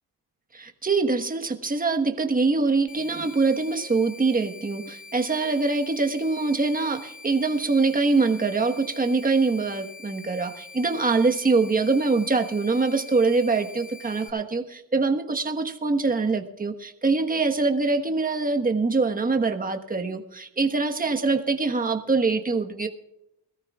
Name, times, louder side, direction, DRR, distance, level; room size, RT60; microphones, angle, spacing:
voice 1, 0.5-22.9, right 3 dB, 20° right, 5 dB, 1.3 m, -24 dB
sound 1, 2.9-14.3, left 4 dB, 15° left, 1.9 m, -45 dB
21.5 x 14.0 x 2.4 m, 0.85 s
cardioid pair, 80°, 45 cm